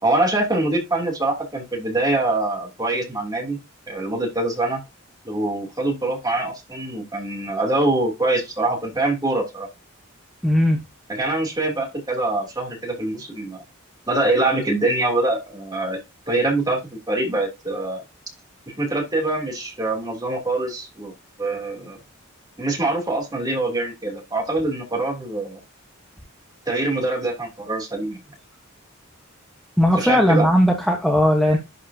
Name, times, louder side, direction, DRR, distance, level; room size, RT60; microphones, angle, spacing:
voice 1, 0.0-3.6 3.9-4.8 5.2-9.7 11.1-13.6 14.1-16.0 16.3-18.0 18.7-21.1 21.4-22.0 22.6-25.6 26.7-28.2 30.0-30.5, right 2 dB, 20° right, 2.8 m, -24 dB
voice 2, 10.4-10.8 29.8-31.6, equal, ahead, 1.1 m, -17 dB
11.0 x 5.1 x 2.7 m
head